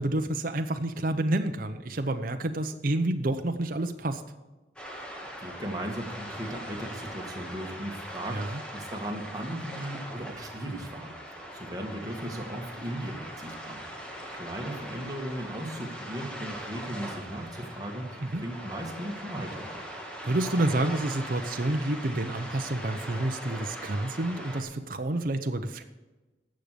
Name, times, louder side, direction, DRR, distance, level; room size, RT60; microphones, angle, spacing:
voice 1, 0.0-4.2 8.3-8.6 18.2-18.4 20.2-25.8, right 1 dB, 50° right, 6 dB, 0.8 m, -29 dB
sound 1, 4.8-24.6, equal, 5° left, 1.8 m, -41 dB
voice 2, 5.4-11.1 11.5-14.0 14.3-19.8, right 1 dB, 20° right, 1 dB, 2.0 m, -37 dB
12.0 x 7.7 x 6.8 m, 1.2 s
head